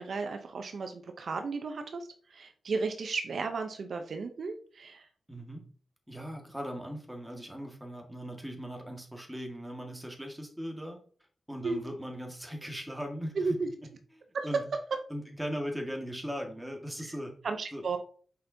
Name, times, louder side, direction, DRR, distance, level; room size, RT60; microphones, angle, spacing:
voice 1, 0.0-5.1 11.6-11.8 13.4-13.7 14.3-14.5 17.4-18.0, right 4 dB, 65° right, 6 dB, 0.7 m, -34 dB
voice 2, 5.3-5.6 6.1-11.0 11.5-13.5 14.4-14.6 15.1-17.3 17.7-17.8, equal, 5° right, 1 dB, 1.7 m, -39 dB
6.6 x 5.2 x 2.7 m, 0.43 s
cardioid pair, 75°, 0 cm